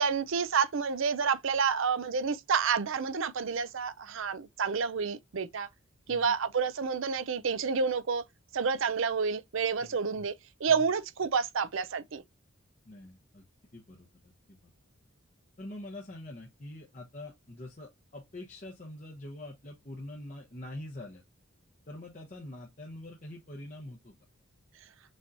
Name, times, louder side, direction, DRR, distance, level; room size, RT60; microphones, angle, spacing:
voice 1, 0.0-5.7 6.1-8.2 8.5-10.3 10.6-12.2, right 5 dB, 60° right, 0.5 m, -29 dB
voice 2, 12.8-13.4 13.7-14.6 15.6-21.2 21.9-24.1, left 1 dB, 35° left, 0.9 m, -45 dB
6.3 x 3.0 x 2.6 m
head